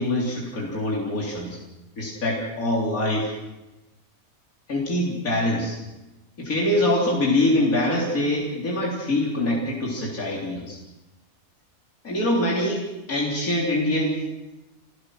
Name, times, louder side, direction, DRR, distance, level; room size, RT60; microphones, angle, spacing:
voice 1, 0.0-1.6 2.0-3.3 4.7-5.8 6.4-10.8 12.0-14.2, left 1 dB, 75° left, -4 dB, 4.1 m, -24 dB
29.5 x 15.5 x 6.3 m, 1.0 s
omnidirectional pair, 1.5 m